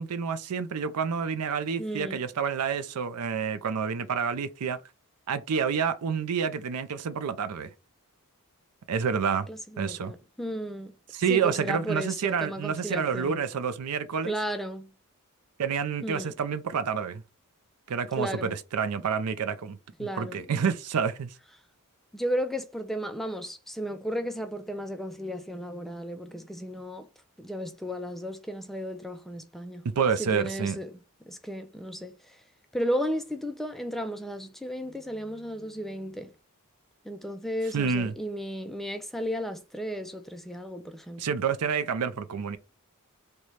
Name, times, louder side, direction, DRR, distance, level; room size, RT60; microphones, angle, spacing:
voice 1, 0.0-4.8 5.3-7.7 8.9-9.5 9.8-10.1 11.1-14.3 15.6-17.2 17.9-21.3 29.8-30.8 37.7-38.1 41.2-42.6, right 6 dB, 90° right, 0.5 m, -28 dB
voice 2, 1.8-2.2 9.2-10.9 11.3-13.4 14.3-14.9 16.0-16.3 18.2-18.5 20.0-20.4 22.1-27.1 27.4-29.9 30.2-31.0 31.3-32.4 32.7-36.3 37.0-41.2, equal, ahead, 0.3 m, -34 dB
3.1 x 2.2 x 4.0 m
head